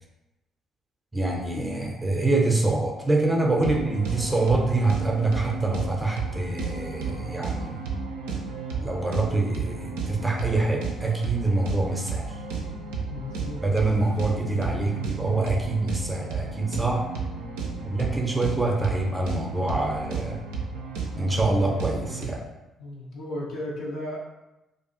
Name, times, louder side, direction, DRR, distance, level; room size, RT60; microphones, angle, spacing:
voice 1, 1.1-7.8 8.8-12.4 13.6-17.0 17.8-20.4 21.2-22.4, right 2 dB, 15° right, 1 dB, 0.6 m, -25 dB
voice 2, 3.5-3.9 13.1-13.6 22.8-24.2, left 1 dB, 60° left, -3 dB, 0.5 m, -35 dB
sound 1, 3.6-22.3, right 4 dB, 70° right, 0.4 m, -33 dB
2.5 x 2.3 x 2.7 m, 0.97 s
figure-of-eight pair, 45°, 0 cm